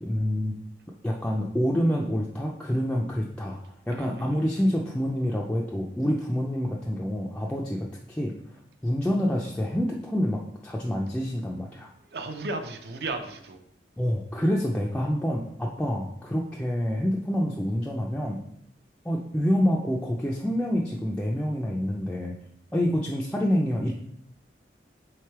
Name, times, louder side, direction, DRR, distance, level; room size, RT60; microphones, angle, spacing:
voice 1, 0.0-0.6 1.0-3.6 3.9-8.6 8.8-11.9 14.0-18.4 19.0-22.3 22.7-23.9, equal, 5° left, -3 dB, 0.3 m, -27 dB
voice 2, 3.9-4.7 12.1-13.6, right 2 dB, 60° right, 7 dB, 0.5 m, -35 dB
3.6 x 3.3 x 4.4 m, 0.73 s
head